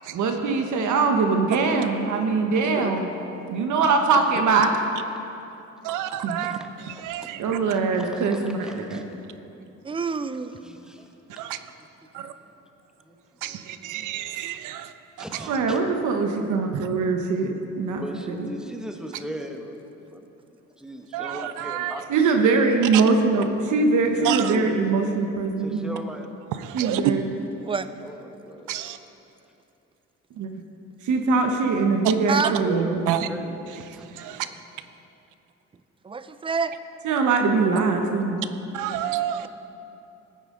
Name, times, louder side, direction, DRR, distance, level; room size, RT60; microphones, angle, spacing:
voice 1, 0.1-3.1 3.5-4.7 6.2-6.4 7.4-9.0 15.5-18.0 18.4-18.5 22.1-25.9 26.7-27.2 30.4-30.5 31.0-33.0 37.0-38.5, right 4 dB, 75° right, 4 dB, 1.1 m, -22 dB
voice 2, 2.3-3.0 6.1-6.7 7.4-7.5 7.9-9.0 10.6-11.1 12.4-12.5 13.1-13.2 13.6-14.6 15.2-15.9 18.0-19.8 20.1-20.3 20.8-22.0 24.1-24.8 25.6-26.2 28.0-28.9 32.4-34.6, equal, ahead, 3 dB, 1.0 m, -39 dB
voice 3, 5.8-6.6 7.0-7.4 11.4-11.6 12.1-12.3 13.4-14.9 21.1-22.0 24.2-24.5 26.6-27.0 28.7-29.0 33.1-33.3 34.2-34.5 38.7-39.5, right 12 dB, 90° right, 11 dB, 0.6 m, -29 dB
voice 4, 9.8-10.5 27.6-27.9 32.3-32.6 36.0-36.7, right 5 dB, 20° right, 12 dB, 0.4 m, -27 dB
14.5 x 9.2 x 3.8 m, 2.8 s
cardioid pair, 90°, 30 cm